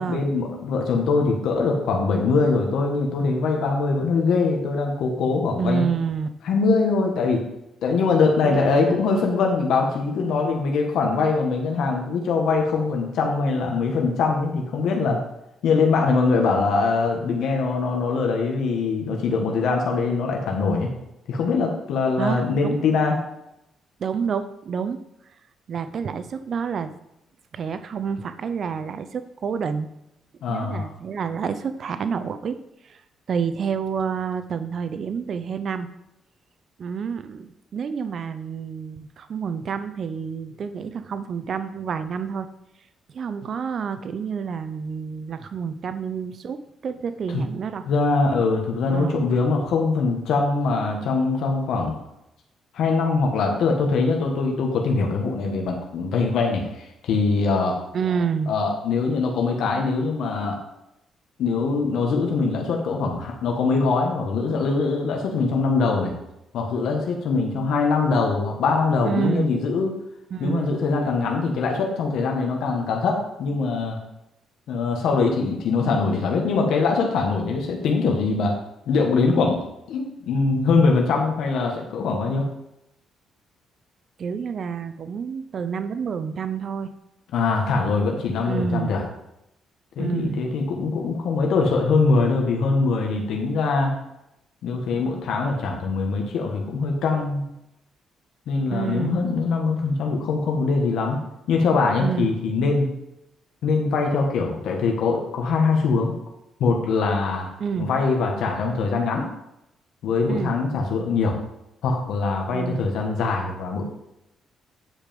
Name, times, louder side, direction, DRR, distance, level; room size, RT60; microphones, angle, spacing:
voice 1, 0.0-5.8 6.4-7.4 7.8-15.2 15.6-20.9 21.3-23.2 30.4-30.9 47.3-47.4 47.9-52.0 52.7-57.8 58.5-60.6 61.4-66.1 66.5-70.0 70.4-74.0 74.7-78.5 78.9-79.6 79.9-82.5 87.3-89.0 89.9-93.9 94.6-97.4 98.5-101.2 101.5-102.9 103.6-106.1 106.6-107.5 107.8-109.3 110.0-111.4 111.8-113.8, left 4 dB, 75° left, 1 dB, 1.6 m, -22 dB
voice 2, 5.6-6.3 8.4-9.0 22.2-22.8 24.0-25.0 25.7-27.0 27.5-29.9 30.5-32.6 32.8-33.0 33.3-35.9 36.8-42.5 43.1-47.8 48.9-49.3 57.9-58.5 69.0-69.5 70.3-70.7 84.2-86.9 88.4-88.9 90.0-90.4 98.7-99.3 102.0-102.3 107.6-107.9 110.3-110.5 112.5-112.9, right 6 dB, 55° right, 11 dB, 0.6 m, -28 dB
9.8 x 5.0 x 5.3 m, 0.85 s
cardioid pair, 90°, 0 cm